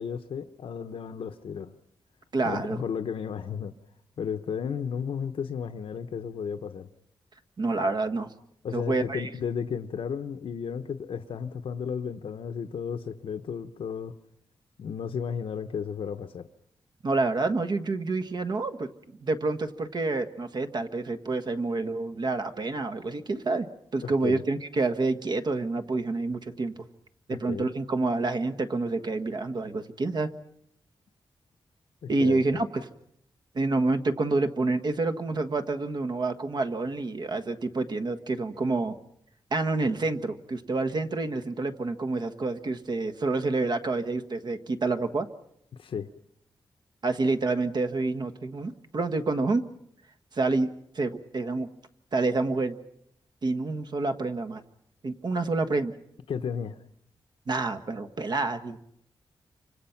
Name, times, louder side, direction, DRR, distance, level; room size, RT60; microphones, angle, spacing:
voice 1, 0.0-1.7 2.4-3.7 4.2-6.9 8.6-14.1 14.8-16.5 24.0-24.4 27.3-27.7 32.0-32.6 45.7-46.1 56.3-56.8, left 7 dB, 85° left, 7 dB, 1.0 m, -33 dB
voice 2, 2.3-2.8 7.6-8.3 8.7-9.3 17.0-18.9 19.2-23.7 23.9-26.7 27.3-30.3 32.1-32.9 33.5-39.0 39.5-45.3 47.0-49.6 50.3-51.7 52.1-52.7 53.4-54.6 55.0-56.0 57.5-58.8, right 3 dB, 55° right, 9 dB, 1.5 m, -28 dB
29.0 x 25.5 x 5.9 m, 0.73 s
wide cardioid pair, 125°, 9 cm